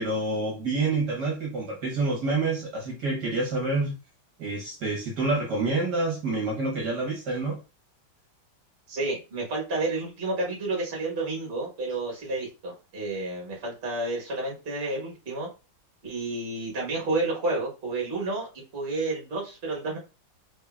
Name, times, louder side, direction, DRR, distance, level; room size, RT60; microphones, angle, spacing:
voice 1, 0.0-3.9 4.4-7.6, right 3 dB, 60° right, -2 dB, 1.4 m, -27 dB
voice 2, 8.9-15.5 16.0-18.5 18.7-20.0, right 2 dB, 35° right, -2 dB, 1.2 m, -30 dB
3.6 x 3.4 x 2.3 m, 0.31 s
omnidirectional pair, 2.3 m